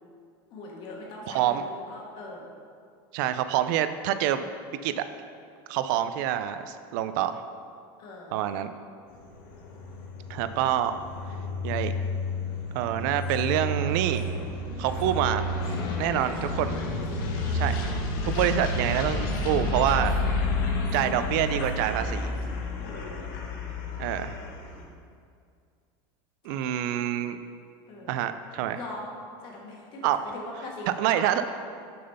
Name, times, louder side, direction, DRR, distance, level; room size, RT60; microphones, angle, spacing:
voice 1, 0.5-2.5 8.0-8.4 15.0-15.3 15.7-16.6 17.0-17.3 22.7-23.1 26.4-26.7 27.9-28.1 28.7-29.1 29.4-31.5, left 2 dB, 40° left, -1 dB, 1.4 m, -41 dB
voice 2, 3.1-4.4 4.8-5.0 5.7-7.4 8.3-8.7 10.3-11.0 11.6-11.9 12.7-14.2 14.8-15.5 16.0-16.7 17.5-17.8 18.2-20.2 20.9-22.3 24.0-24.4 26.4-27.4 28.1-28.8 30.0-30.2 31.0-31.4, right 11 dB, 60° right, 11 dB, 0.3 m, -26 dB
sound 1, 9.2-24.8, left 2 dB, 65° left, 1.0 m, -30 dB
sound 2, 13.2-17.9 18.2-18.7 19.2-19.5 19.8-20.3 20.6-21.1 21.4-21.8 22.3-22.5, right 1 dB, 80° right, 1.1 m, -47 dB
6.5 x 4.0 x 5.4 m, 2.2 s
supercardioid pair, 160°, 12 cm